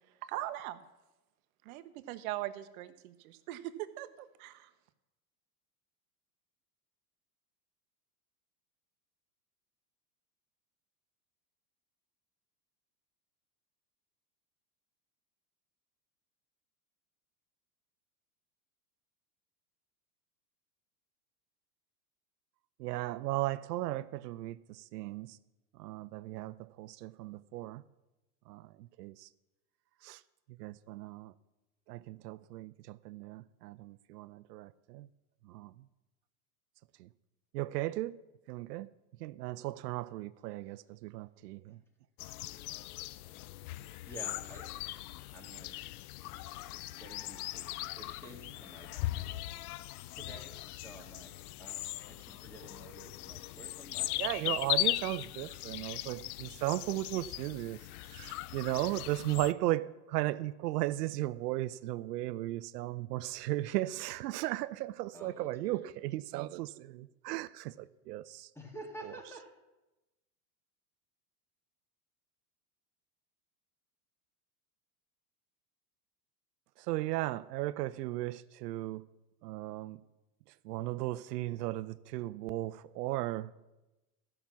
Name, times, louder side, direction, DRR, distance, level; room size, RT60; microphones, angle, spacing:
voice 1, 0.2-0.8 1.6-4.7, right 15 dB, 60° right, 1.0 m, -41 dB
voice 2, 22.8-25.4 25.8-27.8 28.5-28.7 29.0-29.3 30.0-30.2 30.6-31.3 31.9-35.1 35.5-35.7 37.0-37.1 37.5-38.2 38.5-38.9 39.2-41.8 54.1-57.8 58.1-68.5 69.0-69.4 76.9-79.0 79.4-80.0 80.6-83.6, right 16 dB, 85° right, 0.6 m, -36 dB
sound 1, 42.2-59.5, left 16 dB, 70° left, 0.6 m, -39 dB
voice 3, 44.1-44.6 45.3-45.7 47.0-49.4 50.1-51.3 51.6-51.8 52.1-54.1 54.4-54.5 65.1-65.9 68.6-69.5, right 1 dB, 5° left, 2.0 m, -50 dB
14.0 x 6.0 x 7.1 m
supercardioid pair, 130°, 47 cm